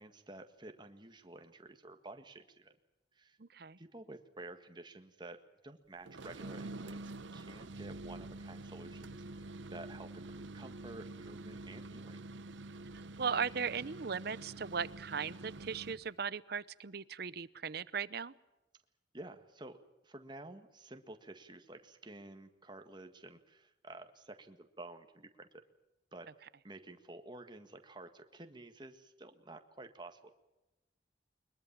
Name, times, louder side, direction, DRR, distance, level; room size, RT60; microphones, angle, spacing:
voice 1, 0.0-2.8 3.1-3.4 3.8-12.2 19.1-25.6 26.1-30.3, right 2 dB, 25° right, 7 dB, 1.8 m, -51 dB
voice 2, 3.4-3.8 13.2-18.3, right 6 dB, 60° right, 18 dB, 0.8 m, -37 dB
sound 1, 6.0-16.1, right 2 dB, 85° right, 0.9 m, -47 dB
22.5 x 21.5 x 7.4 m, 0.99 s
head